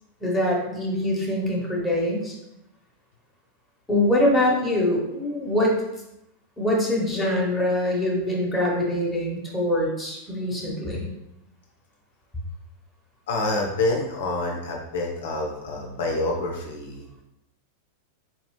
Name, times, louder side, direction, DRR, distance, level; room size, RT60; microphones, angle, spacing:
voice 1, 0.2-2.3 3.9-5.8 6.6-11.1, left 1 dB, 5° left, -4 dB, 1.2 m, -24 dB
voice 2, 13.3-17.1, left 2 dB, 55° left, 0 dB, 0.6 m, -27 dB
4.2 x 2.9 x 3.1 m, 0.86 s
figure-of-eight pair, 90°, 0 cm